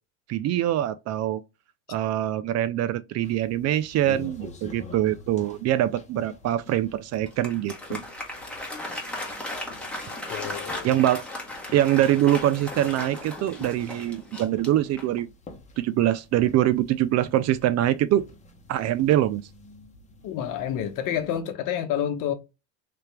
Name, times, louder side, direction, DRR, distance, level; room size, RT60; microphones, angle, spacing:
voice 1, 0.3-1.4 1.9-8.0 10.8-11.2 11.7-15.3 15.8-18.3 18.7-19.4, right 13 dB, 45° right, 0.4 m, -24 dB
sound 1, 3.2-21.4, left 2 dB, 20° left, 1.1 m, -48 dB
Applause, 7.1-15.3, left 1 dB, 5° left, 1.4 m, -36 dB
voice 2, 10.3-10.9 20.2-22.3, left 10 dB, 60° left, 0.9 m, -29 dB
3.4 x 2.8 x 3.3 m
supercardioid pair, 110°, 36 cm